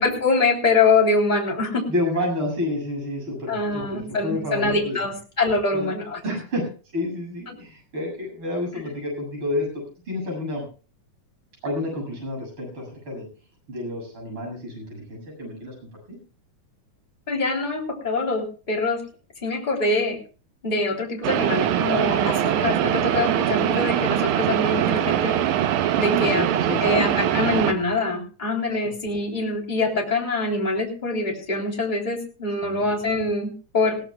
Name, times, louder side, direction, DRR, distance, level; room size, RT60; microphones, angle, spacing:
voice 1, 0.0-1.8 3.5-6.2 7.5-7.6 17.3-19.0 19.4-20.2 20.6-25.4 26.0-26.4 26.8-34.0, left 3 dB, 15° left, -1 dB, 3.2 m, -24 dB
voice 2, 1.9-5.0 5.7-5.9 6.2-6.6 6.9-9.7 10.1-10.6 11.6-13.2 13.7-15.7 16.1-16.2 26.0-27.0 27.4-27.5 28.8-28.9 32.6-32.9, left 1 dB, 40° right, 0 dB, 8.3 m, -29 dB
sound 1, 21.2-27.7, right 11 dB, 75° right, 2.3 m, -22 dB
20.5 x 17.0 x 2.3 m, 0.36 s
omnidirectional pair, 3.5 m